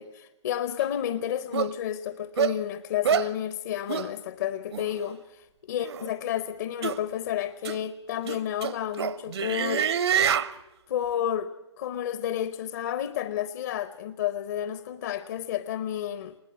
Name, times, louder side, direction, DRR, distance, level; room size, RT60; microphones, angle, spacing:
voice 1, 0.0-10.4 10.9-16.4, left 10 dB, 40° left, 13 dB, 0.8 m, -31 dB
sound 1, 0.8-0.9 1.5-1.7 2.4-2.6 3.0-3.3 3.9-4.1 4.7-4.9 5.8-6.1 6.8-7.0 7.6-7.8 8.2-10.5, right 8 dB, 65° right, 0.9 m, -26 dB
20.5 x 19.0 x 8.4 m, 1.0 s
hypercardioid pair, 160°, 15 cm